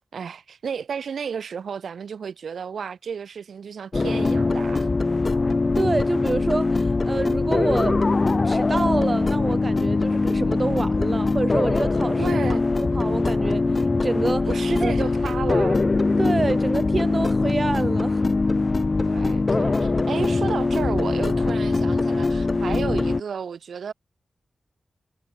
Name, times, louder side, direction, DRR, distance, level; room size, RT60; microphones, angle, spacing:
voice 1, 0.1-4.9 12.2-12.6 14.5-15.8 19.0-23.9, right 6 dB, 80° right, 3.0 m, -32 dB
sound 1, 3.9-23.2, left 3 dB, 45° left, 0.9 m, -22 dB
voice 2, 5.8-8.0 8.4-12.4 12.8-14.5 14.8-14.9 16.2-18.2, right 3 dB, 45° right, 0.3 m, -27 dB
cardioid pair, 45°, 0 cm